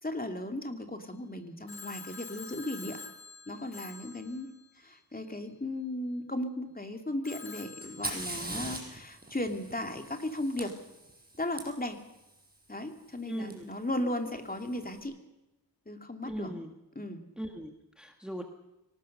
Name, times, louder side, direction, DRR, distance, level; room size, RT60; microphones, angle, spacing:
voice 1, 0.0-3.0 3.5-10.7 11.4-12.0 12.7-15.1 15.9-16.5 16.9-17.2, left 1 dB, 25° left, 5 dB, 2.7 m, -36 dB
Telephone, 1.7-5.0 7.2-8.8, left 4 dB, 70° left, 2.3 m, -47 dB
Fire, 7.8-11.6 13.5-13.6 14.4-14.8, right 2 dB, 25° right, 6.2 m, -41 dB
voice 2, 13.3-13.7 16.2-16.7 17.4-18.4, equal, ahead, 4 dB, 1.8 m, -39 dB
24.0 x 19.0 x 6.6 m, 0.93 s
wide cardioid pair, 85°, 38 cm